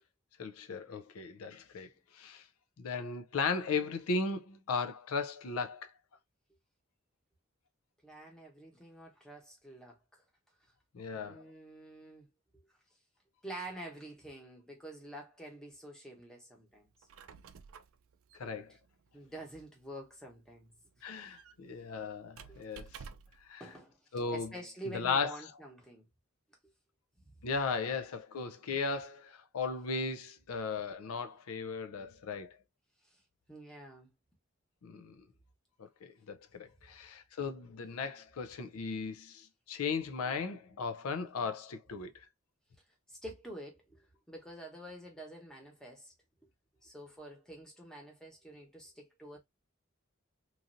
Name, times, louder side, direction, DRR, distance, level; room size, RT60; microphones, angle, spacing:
voice 1, 0.4-1.9 2.1-2.4 2.8-5.9 10.9-11.4 18.4-18.7 21.0-23.0 23.5-23.6 24.1-24.5 24.9-25.4 27.4-32.6 34.8-35.2 35.8-42.3, left 4 dB, 90° left, 0.5 m, -36 dB
voice 2, 8.0-10.2 11.1-12.3 13.4-16.9 18.4-18.8 19.1-21.4 22.5-22.6 23.6-24.0 24.3-26.1 27.3-27.4 33.1-33.2 33.5-34.1 43.1-46.1 46.8-49.4, right 1 dB, 5° left, 0.9 m, -48 dB
Squeak, 16.9-23.5, right 6 dB, 80° right, 0.4 m, -54 dB
3.1 x 2.5 x 2.5 m
head